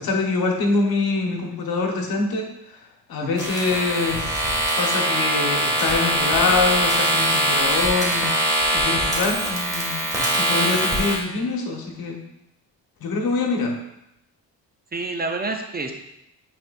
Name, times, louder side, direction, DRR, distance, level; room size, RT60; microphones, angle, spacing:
voice 1, 0.0-2.5 3.1-4.4 4.8-8.3 8.7-10.0 10.4-12.2 13.0-13.7, left 3 dB, 70° left, 1 dB, 1.4 m, -24 dB
sound 1, 3.4-11.2, right 1 dB, 10° right, 2.0 m, -22 dB
voice 2, 14.9-15.9, right 3 dB, 25° right, 4 dB, 0.6 m, -29 dB
8.9 x 4.3 x 2.6 m, 0.83 s
cardioid pair, 100°, 38 cm